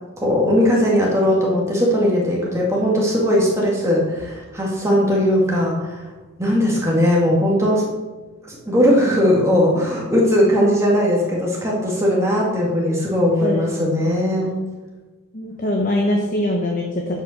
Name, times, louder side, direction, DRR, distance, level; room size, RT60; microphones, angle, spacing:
voice 1, 0.2-6.0 6.4-7.9 8.5-14.6, equal, 15° right, -4 dB, 2.2 m, -18 dB
voice 2, 15.3-17.2, left 1 dB, 35° left, 1 dB, 1.0 m, -22 dB
9.9 x 5.7 x 6.5 m, 1.2 s
head